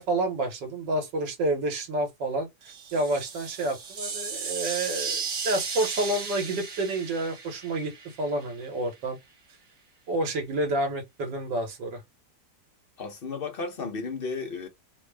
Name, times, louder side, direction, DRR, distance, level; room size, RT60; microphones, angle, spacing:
voice 1, 0.0-2.5 2.9-7.9 8.2-9.2 10.1-12.0, right 2 dB, 80° right, 1.7 m, -29 dB
sound 1, 2.6-8.5, right 5 dB, 55° right, 0.9 m, -35 dB
voice 2, 13.0-14.7, left 4 dB, 45° left, 0.8 m, -33 dB
3.5 x 2.1 x 3.3 m
omnidirectional pair, 1.9 m